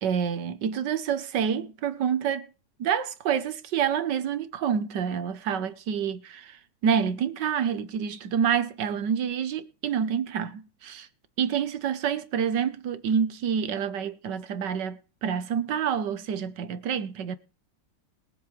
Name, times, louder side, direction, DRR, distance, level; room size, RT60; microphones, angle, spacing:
voice 1, 0.0-2.5 2.8-11.1 11.4-17.4, right 8 dB, 60° right, 1.4 m, -28 dB
22.0 x 7.8 x 3.2 m
omnidirectional pair, 2.4 m